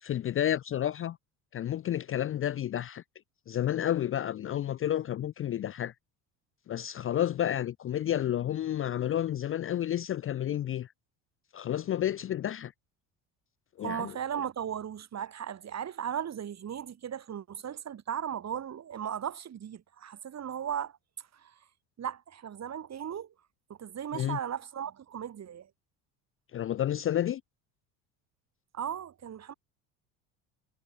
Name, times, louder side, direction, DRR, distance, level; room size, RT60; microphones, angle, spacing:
voice 1, 0.0-1.2 1.5-3.0 3.5-5.9 6.7-10.9 11.5-12.7 13.8-14.1 24.1-24.4 26.5-27.4, left 11 dB, 30° left, 0.5 m, -30 dB
voice 2, 13.8-20.9 21.3-21.5 22.0-23.3 23.7-25.7 28.7-29.5, right 9 dB, 40° right, 2.5 m, -36 dB
hypercardioid pair, 75°, 42 cm